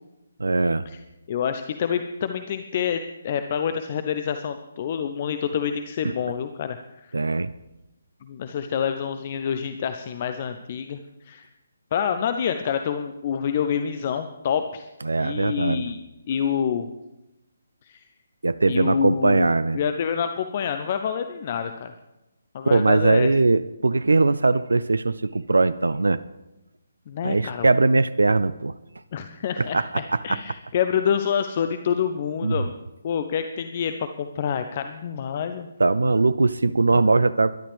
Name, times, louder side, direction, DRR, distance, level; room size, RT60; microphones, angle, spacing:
voice 1, 0.4-0.8 6.0-6.1 7.1-7.5 15.0-15.8 18.4-19.8 22.7-26.2 27.2-28.7 29.6-30.4 32.4-32.6 35.8-37.5, right 3 dB, 65° right, 17 dB, 0.5 m, -20 dB
voice 2, 1.3-7.1 8.2-11.0 11.2-11.5 11.9-14.9 15.2-16.9 17.8-18.1 18.6-21.9 22.5-23.3 27.1-27.7 29.1-32.7 33.0-35.7, left 8 dB, 35° left, 9 dB, 0.7 m, -27 dB
22.5 x 11.5 x 3.5 m, 0.96 s
figure-of-eight pair, 140°, 0 cm